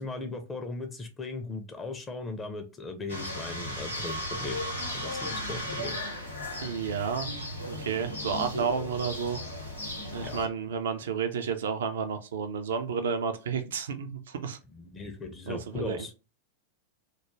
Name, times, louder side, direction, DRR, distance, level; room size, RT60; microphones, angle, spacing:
voice 1, 0.0-4.6 4.9-6.0 10.2-10.4 14.7-16.1, left 3 dB, 15° left, 6 dB, 0.4 m, -38 dB
sound 1, 3.1-10.5, left 1 dB, 90° left, 0.7 m, -36 dB
voice 2, 6.6-7.3 7.7-9.4 10.1-14.6 15.5-16.0, right 6 dB, 60° right, 8 dB, 0.3 m, -31 dB
2.2 x 2.1 x 3.0 m, 0.31 s
figure-of-eight pair, 90°, 0 cm